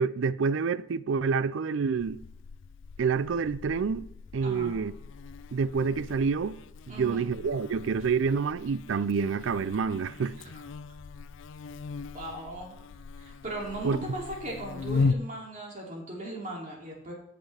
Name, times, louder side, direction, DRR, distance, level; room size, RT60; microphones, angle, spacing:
voice 1, 0.0-2.2 3.0-4.1 4.3-4.9 5.5-6.6 6.9-10.4 13.8-14.0, right 5 dB, 80° right, 0.4 m, -27 dB
Buzz, 2.0-15.2, left 4 dB, 80° left, 0.4 m, -37 dB
voice 2, 4.4-4.7 6.9-7.4 10.4-10.5 12.1-12.7 13.2-17.1, right 1 dB, 40° right, 2.8 m, -38 dB
16.0 x 5.9 x 3.4 m
head